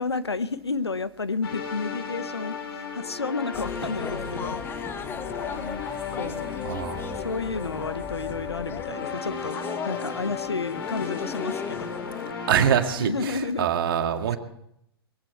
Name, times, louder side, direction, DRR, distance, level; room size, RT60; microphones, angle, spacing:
voice 1, 0.0-4.6 6.1-6.6 7.1-12.0 13.0-13.7 14.3-14.4, left 4 dB, 90° left, 15 dB, 0.8 m, -31 dB
sound 1, 1.4-13.0, left 5 dB, 65° left, 3.2 m, -35 dB
sound 2, 3.5-12.3, left 7 dB, 15° left, 0.7 m, -36 dB
voice 2, 6.6-7.2 12.5-14.4, right 9 dB, 60° right, 7 dB, 1.9 m, -24 dB
21.0 x 15.0 x 4.5 m, 0.74 s
figure-of-eight pair, 110°, 13 cm